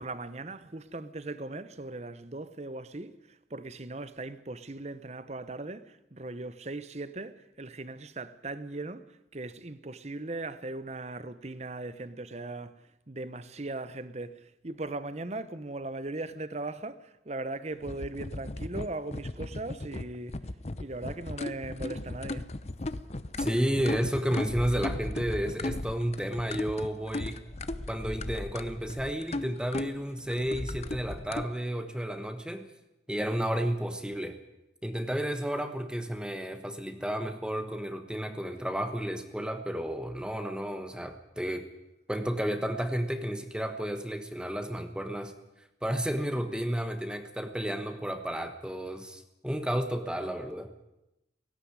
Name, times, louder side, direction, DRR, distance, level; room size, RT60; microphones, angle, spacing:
voice 1, 0.0-20.4 20.8-22.5, right 2 dB, 40° right, 1.0 m, -39 dB
sound 1, 17.8-31.4, left 2 dB, 35° left, 0.8 m, -36 dB
voice 2, 23.4-27.4 27.9-32.7 33.1-34.4 34.8-41.7 42.1-45.3 45.8-50.7, equal, 5° right, 1.2 m, -32 dB
17.5 x 16.5 x 9.6 m
head